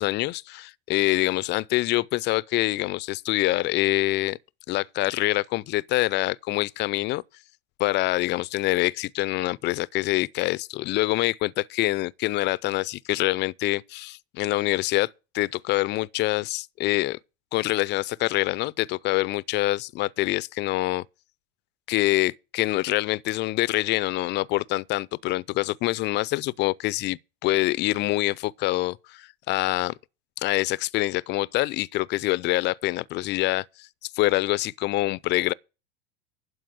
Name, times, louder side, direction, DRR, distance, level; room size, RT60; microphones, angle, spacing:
voice 1, 0.0-4.4 4.7-7.2 7.8-15.1 15.3-17.2 17.5-21.0 21.9-29.9 30.4-35.5, left 18 dB, 35° left, 0.4 m, -25 dB
11.5 x 4.8 x 7.8 m
hypercardioid pair, 90°, 32 cm